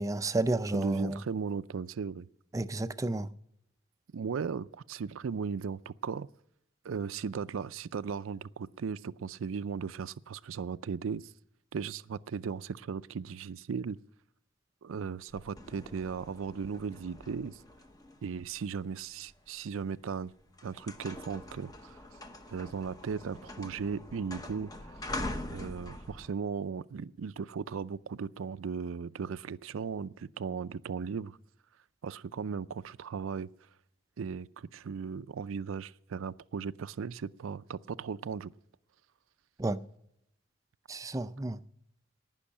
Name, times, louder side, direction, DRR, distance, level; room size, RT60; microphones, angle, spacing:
voice 1, 0.0-1.2 2.5-3.3 39.6-39.8 40.9-41.6, right 2 dB, 15° right, 0.4 m, -31 dB
voice 2, 0.7-2.3 4.1-6.3 6.8-11.3 11.7-14.0 14.8-17.6 18.2-20.3 20.6-22.0 22.5-25.0 25.4-31.4 32.0-33.5 34.2-38.5, right 6 dB, 85° right, 0.4 m, -37 dB
sound 1, 15.3-19.5 20.1-20.3 20.5-26.3, left 1 dB, 20° left, 0.9 m, -43 dB
18.5 x 6.3 x 8.5 m
head